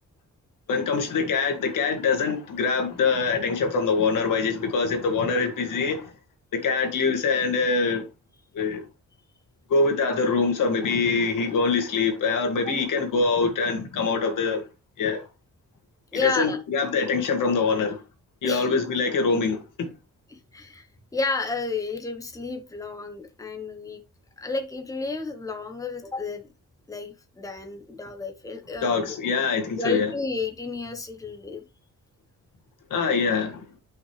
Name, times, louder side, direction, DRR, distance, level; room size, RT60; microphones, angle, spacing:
voice 1, 0.7-6.1 6.5-8.1 8.5-8.8 9.7-14.6 15.0-15.2 16.2-18.0 18.4-19.9 28.8-30.1 32.9-33.7, left 4 dB, 85° left, 2.0 m, -24 dB
voice 2, 16.1-16.6 18.4-18.7 20.3-20.9 21.1-24.0 24.4-26.5 26.9-29.0 29.8-31.6, left 3 dB, 10° left, 1.0 m, -31 dB
9.0 x 5.7 x 3.2 m
wide cardioid pair, 140°, 31 cm